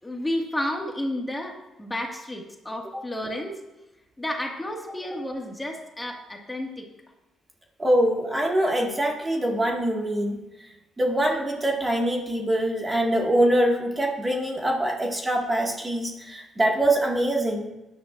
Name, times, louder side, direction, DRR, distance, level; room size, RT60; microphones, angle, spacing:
voice 1, 0.0-3.6 4.2-6.9, left 1 dB, 10° left, 0 dB, 1.8 m, -31 dB
voice 2, 7.8-10.4 11.0-17.7, right 1 dB, 20° right, 0 dB, 1.9 m, -24 dB
16.5 x 10.5 x 2.5 m, 1.0 s
cardioid pair, 90°, 0 cm